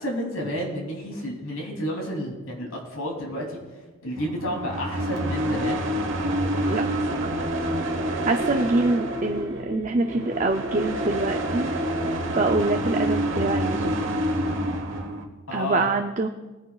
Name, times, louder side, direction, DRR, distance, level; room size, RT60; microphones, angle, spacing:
voice 1, 0.0-3.6 4.0-5.8 8.5-8.7 15.5-15.9, equal, 80° left, 0 dB, 3.0 m, -31 dB
sound 1, 4.2-15.2, right 1 dB, 60° right, 1.2 m, -27 dB
voice 2, 8.2-11.7 12.3-14.0 15.5-16.3, right 2 dB, 35° right, 4 dB, 0.5 m, -25 dB
21.0 x 10.0 x 2.4 m, 1.2 s
head